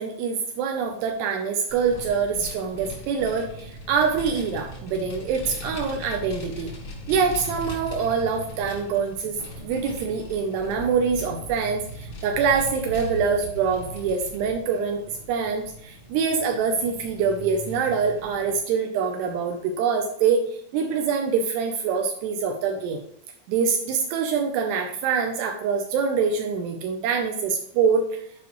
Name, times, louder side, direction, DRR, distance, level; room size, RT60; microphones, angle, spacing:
voice 1, 0.0-6.7 7.1-15.0 15.3-23.0 23.5-28.1, right 6 dB, 80° right, 3 dB, 2.9 m, -25 dB
Vehicle, 1.7-18.6, left 1 dB, 35° left, 1.1 m, -39 dB
11.0 x 5.1 x 3.1 m, 0.69 s
omnidirectional pair, 4.8 m